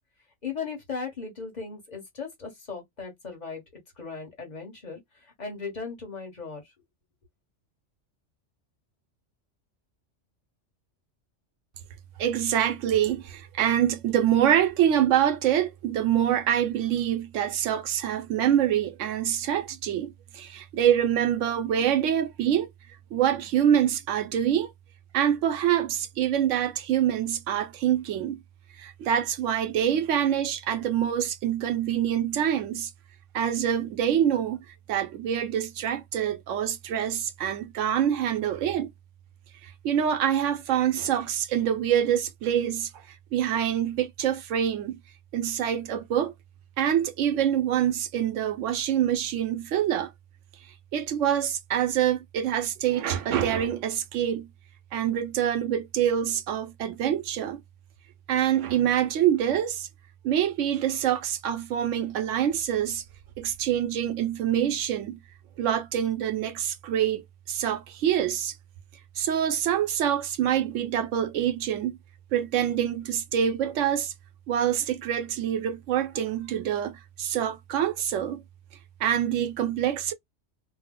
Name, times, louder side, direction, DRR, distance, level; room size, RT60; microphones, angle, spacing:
voice 1, 0.4-3.6 4.0-6.6, left 5 dB, 40° left, 1.2 m, -37 dB
voice 2, 12.2-22.7 23.1-24.7 25.1-28.4 28.8-32.9 33.3-38.9 39.6-45.0 45.3-46.3 46.8-50.1 50.9-54.5 54.9-57.6 58.3-59.9 60.2-63.0 63.4-65.2 65.6-68.5 69.2-72.0 72.3-74.1 74.5-78.4 79.0-80.1, right 10 dB, 90° right, 1.0 m, -25 dB
2.7 x 2.0 x 3.6 m
omnidirectional pair, 1.2 m